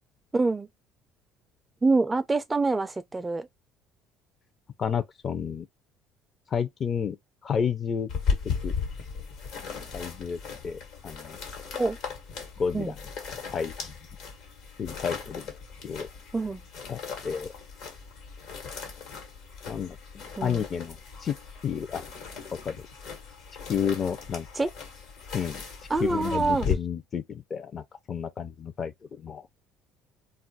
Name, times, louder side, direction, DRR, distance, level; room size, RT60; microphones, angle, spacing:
voice 1, 0.3-0.7 1.8-3.5 11.7-12.0 12.7-12.9 16.3-16.6 20.4-20.6 24.5-24.7 25.9-26.7, right 3 dB, 15° right, 0.3 m, -25 dB
voice 2, 4.8-5.7 6.5-7.2 7.4-8.1 8.6-8.7 9.9-11.4 12.6-12.9 13.5-13.9 14.8-15.5 15.8-16.1 16.9-17.5 19.7-21.3 21.6-22.1 22.6-22.8 23.7-24.7 25.3-25.6 26.0-29.5, left 7 dB, 40° left, 0.5 m, -31 dB
sound 1, 8.1-26.7, left 6 dB, 75° left, 1.2 m, -37 dB
2.3 x 2.2 x 3.9 m
supercardioid pair, 90°, 0 cm